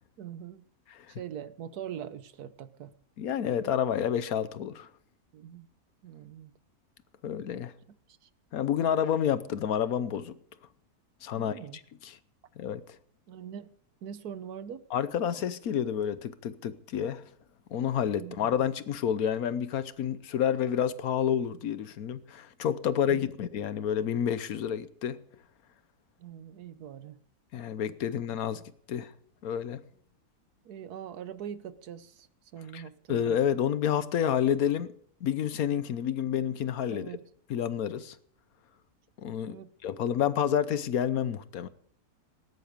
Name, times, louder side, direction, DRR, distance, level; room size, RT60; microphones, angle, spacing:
voice 1, 0.2-0.7 1.1-2.9 5.3-5.7 6.0-6.5 8.2-8.3 11.3-11.8 13.3-13.7 14.0-14.8 18.2-18.5 23.0-23.2 26.2-27.2 30.6-32.3 32.5-33.2 36.9-37.3 39.4-39.7, right 9 dB, 85° right, 1.4 m, -42 dB
voice 2, 3.2-4.9 7.2-7.7 8.5-10.3 11.2-11.5 12.0-12.1 12.6-12.8 14.9-17.2 17.7-25.2 27.5-28.6 28.9-29.1 29.4-29.8 32.7-32.8 33.1-34.9 35.2-37.1 37.5-38.2 39.2-41.7, left 9 dB, 75° left, 1.3 m, -29 dB
18.5 x 10.0 x 5.1 m
omnidirectional pair, 1.6 m